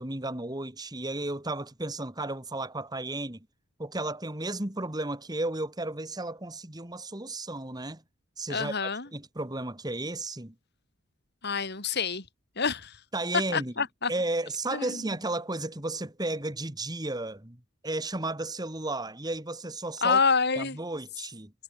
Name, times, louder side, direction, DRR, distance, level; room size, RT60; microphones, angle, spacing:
voice 1, 0.0-3.4 3.8-8.0 8.4-10.5 13.1-13.7 14.1-17.6 17.8-20.2 20.6-21.5, right 2 dB, 20° right, 2.1 m, -33 dB
voice 2, 8.5-9.1 11.4-12.3 12.6-13.0 13.5-14.1 14.7-15.1 20.0-20.8, left 5 dB, 50° left, 3.6 m, -27 dB
head